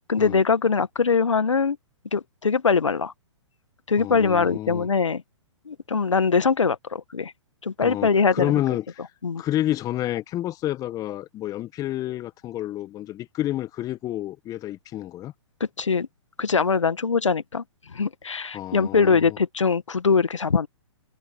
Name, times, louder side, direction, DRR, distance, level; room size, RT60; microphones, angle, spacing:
voice 1, 0.1-1.8 2.1-3.1 3.9-5.2 5.7-7.3 7.6-8.5 9.2-9.4 15.6-16.1 16.4-17.6 17.9-20.7, left 5 dB, 80° left, 1.7 m, -22 dB
voice 2, 4.0-4.9 7.8-9.1 9.4-15.3 18.5-19.4, left 14 dB, 20° left, 1.5 m, -29 dB
figure-of-eight pair, 120°, 16 cm